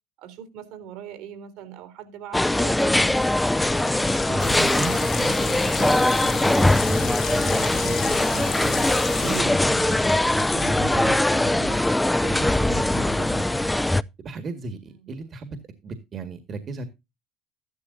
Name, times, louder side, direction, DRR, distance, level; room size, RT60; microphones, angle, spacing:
voice 1, 0.2-3.3 15.0-15.1, right 10 dB, 70° right, 3.4 m, -41 dB
sound 1, 2.3-14.0, left 1 dB, 10° left, 0.5 m, -22 dB
sound 2, 3.3-11.1, left 7 dB, 40° left, 1.0 m, -35 dB
voice 2, 4.1-8.8 9.2-11.8 12.2-13.6 14.2-15.6 15.8-16.9, right 3 dB, 45° right, 1.9 m, -35 dB
sound 3, 4.4-9.4, left 11 dB, 90° left, 1.3 m, -37 dB
13.5 x 12.0 x 2.7 m
hypercardioid pair, 70°, 0 cm